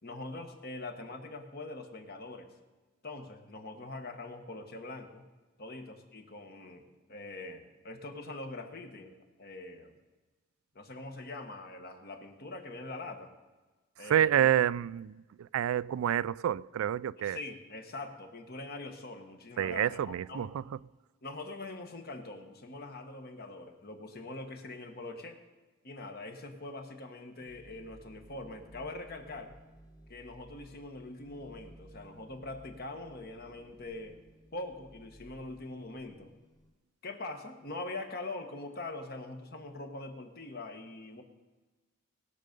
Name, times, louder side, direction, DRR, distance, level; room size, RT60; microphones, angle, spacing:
voice 1, 0.0-2.5 3.0-5.2 5.6-9.9 10.7-13.3 14.0-14.5 17.2-20.5 21.2-25.4 25.8-29.5 30.1-34.2 34.5-36.3 37.0-41.2, left 2 dB, 50° left, 1.4 m, -43 dB
voice 2, 14.1-15.1 15.5-17.4 19.6-20.5, right 10 dB, 85° right, 0.3 m, -28 dB
sound 1, 27.4-36.7, right 1 dB, 20° left, 1.3 m, -57 dB
20.0 x 6.6 x 5.3 m
head